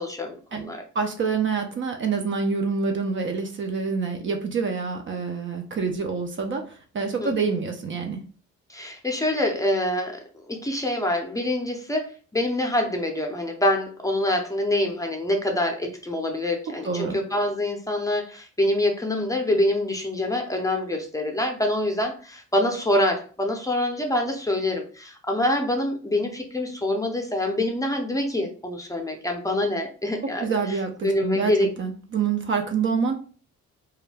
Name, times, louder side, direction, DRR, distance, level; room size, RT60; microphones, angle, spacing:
voice 1, 0.0-0.8 7.2-7.3 8.7-30.8 31.0-31.7, left 1 dB, 10° left, 2 dB, 0.5 m, -25 dB
voice 2, 0.5-8.2 16.8-17.2 30.4-33.2, right 5 dB, 40° right, 4 dB, 0.4 m, -27 dB
2.3 x 2.1 x 3.2 m, 0.40 s
cardioid pair, 90°, 30 cm